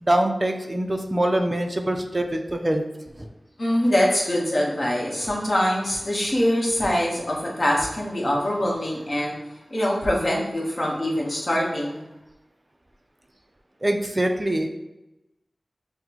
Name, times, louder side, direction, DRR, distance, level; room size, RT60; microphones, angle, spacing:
voice 1, 0.0-2.8 3.2-3.3 13.8-14.7, right 1 dB, 25° right, 4 dB, 0.4 m, -24 dB
voice 2, 3.6-9.4 9.7-12.0, equal, 45° left, -3 dB, 1.1 m, -23 dB
5.8 x 2.1 x 2.9 m, 0.96 s
wide cardioid pair, 80°, 0 cm